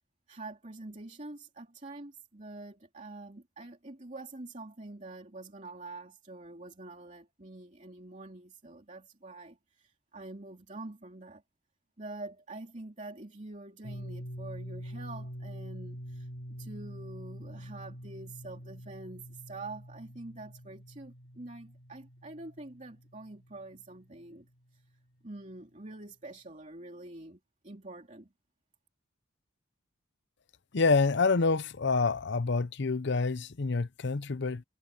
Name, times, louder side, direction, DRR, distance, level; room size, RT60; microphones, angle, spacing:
voice 1, 0.3-11.4 12.0-16.3 16.6-24.5 24.7-24.8 25.2-28.3, right 2 dB, 35° right, 2.8 m, -46 dB
sound 1, 13.8-24.4, equal, 75° left, 6.4 m, -45 dB
voice 2, 30.7-34.6, left 4 dB, 60° left, 0.7 m, -27 dB
head